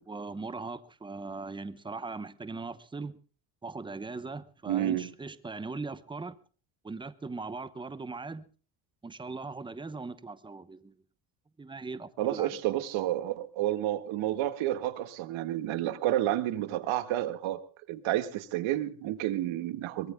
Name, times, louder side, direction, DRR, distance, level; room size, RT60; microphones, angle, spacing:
voice 1, 0.1-3.2 3.6-6.4 6.8-8.4 9.0-11.0 11.6-12.5, right 3 dB, 10° right, 0.8 m, -39 dB
voice 2, 4.7-5.1 12.2-17.6 17.9-20.1, right 13 dB, 75° right, 1.8 m, -30 dB
23.0 x 22.5 x 2.2 m
cardioid pair, 165°, 47 cm